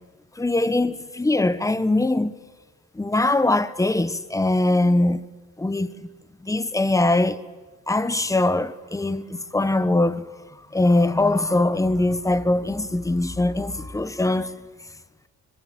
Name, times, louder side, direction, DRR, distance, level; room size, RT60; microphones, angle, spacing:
voice 1, 0.4-2.3 2.9-5.2 5.6-6.1 6.4-7.4 7.9-10.3 10.7-14.6, left 2 dB, 10° left, 1.1 m, -22 dB
26.5 x 21.5 x 7.9 m
cardioid pair, 90°, 30 cm